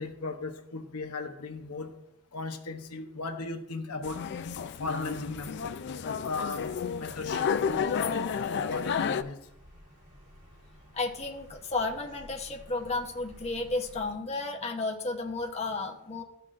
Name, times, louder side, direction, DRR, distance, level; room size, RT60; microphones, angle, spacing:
voice 1, 0.0-1.9 2.3-4.2 4.8-5.6 6.2-6.7 7.0-7.9 8.5-9.4, left 3 dB, 80° left, 5 dB, 0.8 m, -36 dB
sound 1, 4.0-9.2, left 6 dB, 50° left, 0.4 m, -31 dB
Bird vocalization bird call bird song, 6.5-14.1, equal, 75° right, 3.4 m, -54 dB
voice 2, 10.9-16.2, left 3 dB, 30° left, 1 dB, 0.8 m, -33 dB
14.0 x 5.9 x 2.5 m, 0.82 s
head